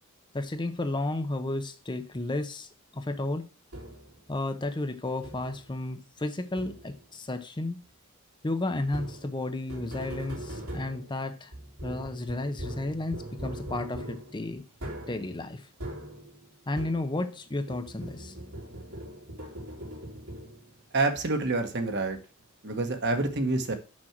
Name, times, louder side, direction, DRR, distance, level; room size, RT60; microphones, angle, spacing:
voice 1, 0.3-3.4 4.3-7.8 8.4-11.5 11.8-14.6 15.1-15.7 16.7-18.4, left 2 dB, 20° left, 0.7 m, -32 dB
sound 1, 3.7-4.2 5.2-5.7 6.6-7.1 8.9-17.4 17.7-20.8, right 1 dB, 80° right, 3.3 m, -41 dB
voice 2, 20.9-22.2 22.6-23.7, right 2 dB, 50° right, 1.4 m, -27 dB
6.3 x 6.2 x 5.9 m
head